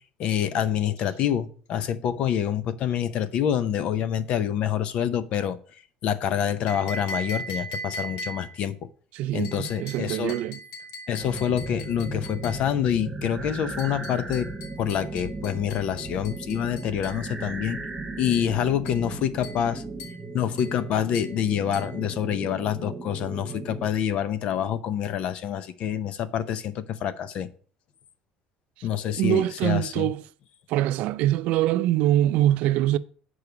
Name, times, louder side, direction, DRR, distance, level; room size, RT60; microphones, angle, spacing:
voice 1, 0.2-5.6 6.0-8.9 9.3-10.4 11.1-14.5 14.8-17.8 18.2-19.8 20.3-27.5 28.8-30.1, left 9 dB, 45° left, 0.7 m, -27 dB
sound 1, 6.7-8.6 9.4-12.7 13.8-17.2 18.3-18.5 18.9-19.1 19.4-19.7 20.0-20.3 20.6-20.8 21.1-21.4 21.7-22.0, right 1 dB, 80° left, 2.6 m, -39 dB
voice 2, 9.1-10.6 29.2-30.2 30.7-33.0, right 13 dB, 60° right, 0.4 m, -24 dB
sound 2, 11.2-23.9, right 2 dB, 5° right, 0.7 m, -36 dB
6.8 x 4.8 x 6.9 m
cardioid pair, 170°, 3 cm